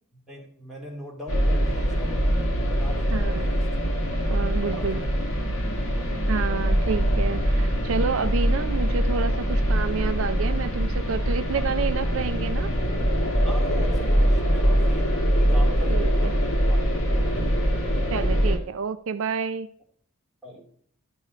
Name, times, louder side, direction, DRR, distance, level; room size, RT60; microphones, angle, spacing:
voice 1, 0.3-3.6 4.7-5.1 5.8-6.2 11.5-11.7 13.4-17.6 20.4-20.7, equal, ahead, 2.5 m, -41 dB
sound 1, 1.3-18.6, equal, 80° left, 1.9 m, -23 dB
voice 2, 3.1-3.5 4.3-5.0 6.3-12.7 15.9-16.3 18.1-19.7, right 5 dB, 65° right, 0.4 m, -29 dB
sound 2, 5.2-14.2, right 1 dB, 35° right, 1.1 m, -39 dB
12.0 x 5.3 x 5.0 m
head